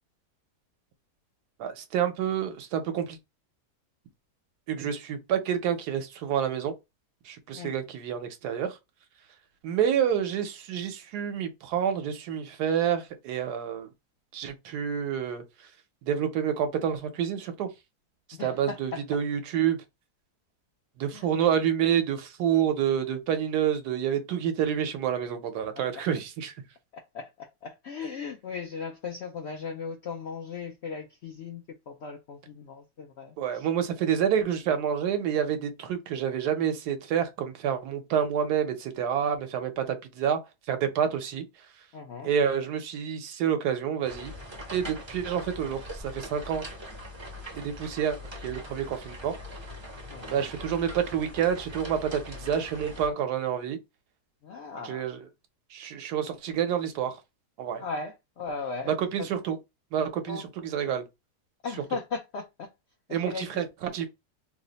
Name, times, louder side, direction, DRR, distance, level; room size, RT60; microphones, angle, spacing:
voice 1, 1.6-3.2 4.7-6.7 7.2-8.8 9.6-13.9 14.3-15.7 16.0-17.7 18.4-19.8 21.0-26.6 33.4-40.4 40.7-41.5 42.2-44.3 44.7-46.7 47.5-49.4 50.3-53.8 54.8-55.3 55.7-57.2 57.6-57.8 58.9-59.6 59.9-61.0 63.1-64.1, right 8 dB, 80° right, 1.2 m, -28 dB
voice 2, 18.3-18.8 21.1-21.3 26.9-33.7 41.9-42.3 50.1-50.5 54.4-55.1 57.7-59.3 60.3-60.4 61.6-62.7 63.1-63.6, left 5 dB, 75° left, 0.6 m, -37 dB
sound 1, 44.0-53.1, left 1 dB, 30° right, 0.5 m, -42 dB
3.1 x 2.0 x 3.9 m
omnidirectional pair, 1.7 m